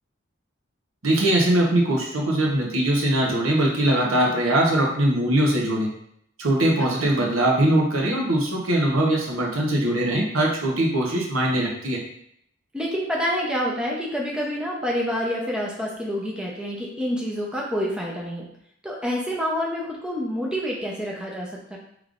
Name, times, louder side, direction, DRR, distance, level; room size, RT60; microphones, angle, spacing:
voice 1, 1.0-5.9 6.4-12.0, right 1 dB, 85° right, -1 dB, 1.0 m, -21 dB
voice 2, 12.7-18.5 18.8-21.8, equal, 5° right, -3 dB, 0.6 m, -27 dB
5.2 x 3.2 x 2.5 m, 0.72 s
head